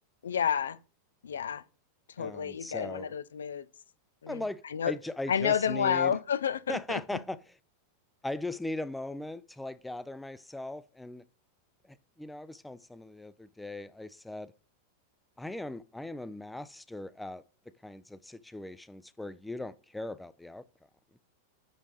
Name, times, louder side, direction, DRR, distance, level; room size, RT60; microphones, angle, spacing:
voice 1, 0.2-0.8 1.2-1.6 2.2-3.7 4.2-4.4 4.7-4.9 5.3-7.0, left 8 dB, 65° left, 0.4 m, -30 dB
voice 2, 2.2-3.1 4.3-6.2 6.7-7.4 8.2-11.2 11.8-14.5 15.4-17.4 17.8-20.6, left 2 dB, 5° left, 0.4 m, -39 dB
10.0 x 3.5 x 3.9 m
figure-of-eight pair, 90°, 0 cm